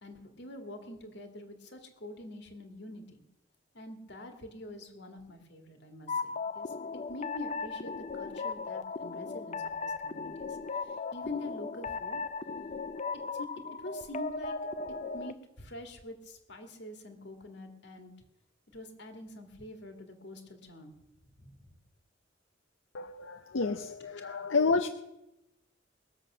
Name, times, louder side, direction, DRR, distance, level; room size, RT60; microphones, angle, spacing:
voice 1, 0.0-3.2 3.7-6.7 7.1-12.2 13.3-13.5 13.8-14.6 15.1-18.1 18.7-20.9 21.4-21.7, left 2 dB, 65° left, 5 dB, 2.3 m, -45 dB
sound 1, 6.1-15.3, left 4 dB, 40° left, 0.6 m, -37 dB
voice 2, 22.9-24.9, left 4 dB, 85° left, 7 dB, 0.7 m, -30 dB
21.0 x 7.7 x 6.2 m, 0.95 s
head